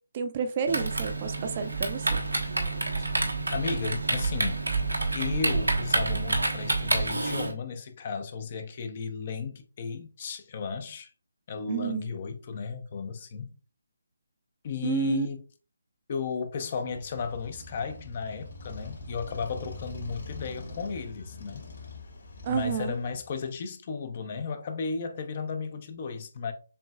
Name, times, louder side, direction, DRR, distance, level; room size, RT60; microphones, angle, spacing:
voice 1, 0.1-2.2 11.7-12.1 14.8-15.3 22.4-23.0, right 7 dB, 35° right, 0.6 m, -30 dB
Typing, 0.7-7.5, right 3 dB, 85° right, 1.3 m, -28 dB
voice 2, 3.5-4.7 5.1-11.1 11.5-13.5 14.6-15.4 16.1-21.7 22.5-26.5, left 5 dB, 40° left, 0.8 m, -34 dB
Motorcycle, 16.9-23.6, left 2 dB, 60° left, 2.3 m, -43 dB
6.8 x 3.1 x 2.4 m
figure-of-eight pair, 150°, 0 cm